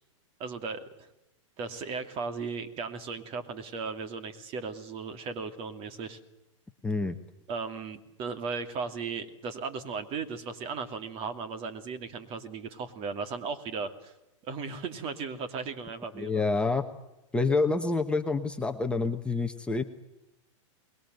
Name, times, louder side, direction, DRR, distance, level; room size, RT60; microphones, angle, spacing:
voice 1, 0.4-1.1 1.6-6.2 7.5-14.1 14.5-16.4, right 5 dB, 35° right, 9 dB, 2.7 m, -36 dB
voice 2, 6.8-7.2 16.2-16.8 17.3-19.8, left 3 dB, 5° left, 4 dB, 1.1 m, -27 dB
24.0 x 21.0 x 7.9 m, 0.91 s
hypercardioid pair, 140°, 17 cm